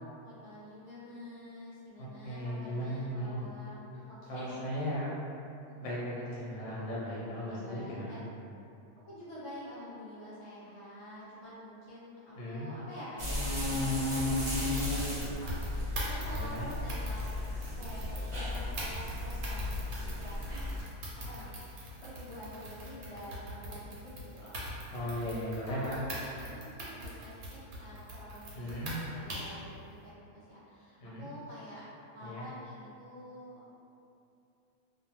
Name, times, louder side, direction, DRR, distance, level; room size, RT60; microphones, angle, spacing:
voice 1, 0.2-4.9 5.7-5.8 7.1-8.2 9.0-17.2 17.6-20.4 21.3-24.6 24.9-25.1 25.7-31.8 32.1-33.7, left 1 dB, 25° left, -13 dB, 0.8 m, -48 dB
voice 2, 2.0-3.5 4.3-5.1 5.8-8.2 12.4-12.7 16.3-16.6 24.9-26.0 28.5-28.9 31.0-31.3 32.2-32.5, equal, 90° left, -7 dB, 1.2 m, -37 dB
sound 1, 13.2-20.8, left 2 dB, 35° right, 0.5 m, -34 dB
sound 2, 14.2-29.6, right 1 dB, 80° right, 1.1 m, -42 dB
2.7 x 2.1 x 2.9 m, 2.7 s
omnidirectional pair, 1.5 m